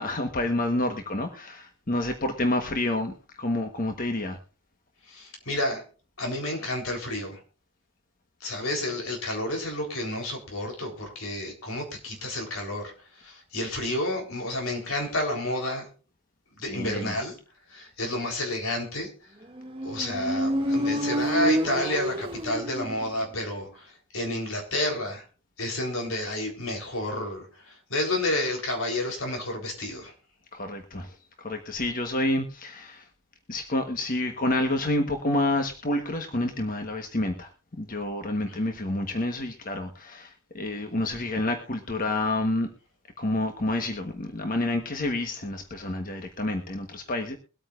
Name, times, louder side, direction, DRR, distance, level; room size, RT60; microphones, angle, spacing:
voice 1, 0.0-4.4 16.6-17.2 30.5-33.0 33.5-37.5 37.8-42.7 43.2-47.4, left 1 dB, 40° left, 5 dB, 1.3 m, -29 dB
voice 2, 5.1-5.8 6.2-7.4 8.4-15.9 16.5-17.4 17.7-19.1 19.8-25.2 25.6-30.1, left 1 dB, 85° left, 2 dB, 3.8 m, -30 dB
Motorcycle, 19.6-23.2, equal, 25° right, 1.4 m, -28 dB
23.0 x 8.9 x 2.5 m, 0.37 s
head